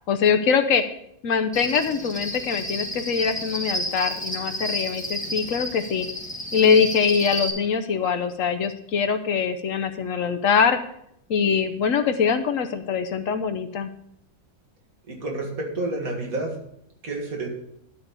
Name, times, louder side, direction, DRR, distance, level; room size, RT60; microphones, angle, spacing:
voice 1, 0.1-0.8 1.2-6.1 6.5-10.8 11.3-13.9, left 6 dB, 65° left, 9 dB, 1.0 m, -23 dB
Cricket, 1.5-7.5, equal, 5° left, 1.4 m, -31 dB
voice 2, 15.1-16.6 17.0-17.5, right 2 dB, 70° right, 0 dB, 2.3 m, -29 dB
12.0 x 4.1 x 6.8 m, 0.73 s
omnidirectional pair, 1.5 m